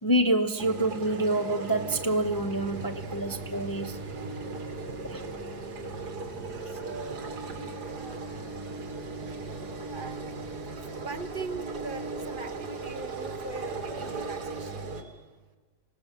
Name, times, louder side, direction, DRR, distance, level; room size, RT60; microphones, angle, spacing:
voice 1, 0.0-4.0 5.0-5.2 7.6-7.8, right 1 dB, 15° left, 6 dB, 0.8 m, -27 dB
sound 1, 0.6-15.0, right 3 dB, 75° right, 2.5 m, -37 dB
sound 2, 1.8-14.3, right 1 dB, 15° right, 7.8 m, -50 dB
voice 2, 6.6-7.2 7.9-8.5 9.8-15.2, right 4 dB, 40° right, 9 dB, 0.9 m, -41 dB
26.5 x 17.5 x 7.6 m, 1.4 s
omnidirectional pair, 1.7 m